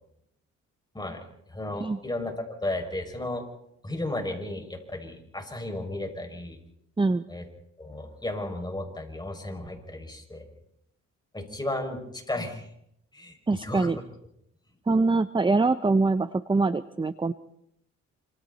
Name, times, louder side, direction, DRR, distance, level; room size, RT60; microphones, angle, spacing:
voice 1, 1.5-2.4 2.6-3.4 3.8-6.6 7.3-7.4 7.8-10.4 11.3-12.7 13.1-13.9, left 1 dB, 15° left, 3 dB, 6.4 m, -34 dB
voice 2, 13.5-14.0 14.9-17.3, right 3 dB, 15° right, 12 dB, 0.8 m, -24 dB
28.0 x 27.0 x 4.2 m, 0.76 s
cardioid pair, 90°, 30 cm